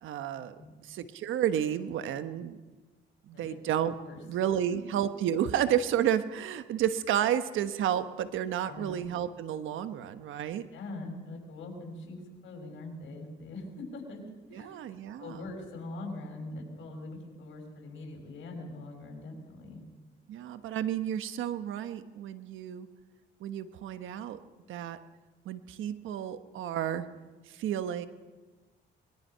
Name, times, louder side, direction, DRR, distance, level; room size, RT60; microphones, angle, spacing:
voice 1, 0.0-0.6 0.8-2.6 3.3-3.9 4.3-10.7 14.5-15.5 20.3-22.9 23.4-24.4 24.7-25.0 25.4-27.1 27.5-28.1, right 10 dB, 80° right, 11 dB, 1.2 m, -31 dB
voice 2, 10.7-14.2 14.5-14.8 15.2-19.8, left 2 dB, 75° left, 2 dB, 5.8 m, -42 dB
23.5 x 21.5 x 5.7 m, 1.3 s
cardioid pair, 90°, 20 cm